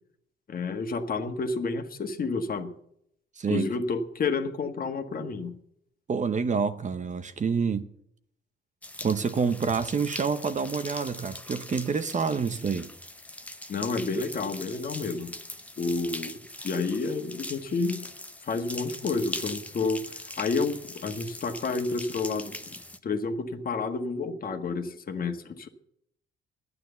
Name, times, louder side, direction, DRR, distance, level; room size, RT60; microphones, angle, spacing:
voice 1, 0.5-2.7 3.5-5.5 13.7-15.3 15.8-16.4 16.6-18.0 18.4-22.7 23.0-25.7, left 4 dB, 45° left, 1.7 m, -30 dB
voice 2, 3.4-3.7 6.1-7.9 9.0-12.9, right 5 dB, 40° right, 1.0 m, -27 dB
sound 1, 8.8-23.0, left 1 dB, 5° left, 0.9 m, -41 dB
11.0 x 9.7 x 6.9 m
cardioid pair, 90°, 20 cm